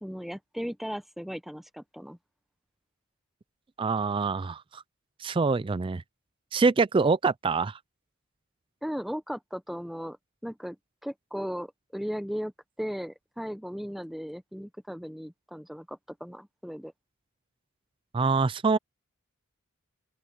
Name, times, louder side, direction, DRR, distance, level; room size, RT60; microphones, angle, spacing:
voice 1, 0.0-2.2 8.8-10.2 10.4-10.8 11.0-12.5 12.8-16.9, equal, ahead, 0.8 m, -36 dB
voice 2, 3.8-4.8 5.2-6.0 6.5-7.8 18.1-18.8, right 4 dB, 25° right, 0.3 m, -25 dB
open air
head